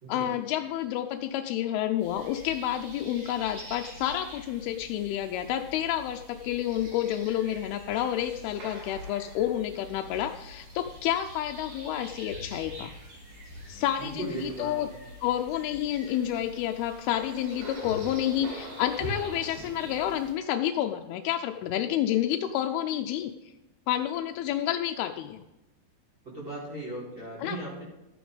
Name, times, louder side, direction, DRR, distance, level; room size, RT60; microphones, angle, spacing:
voice 1, 0.1-12.9 13.7-14.9 15.2-23.3 23.9-25.4 27.4-27.6, left 11 dB, 90° left, 4 dB, 2.5 m, -29 dB
sound 1, 2.0-20.3, right 1 dB, 65° right, 5.5 m, -44 dB
voice 2, 14.0-14.7 26.2-27.8, right 2 dB, 30° right, -7 dB, 5.5 m, -37 dB
14.0 x 9.3 x 4.0 m, 0.98 s
omnidirectional pair, 4.4 m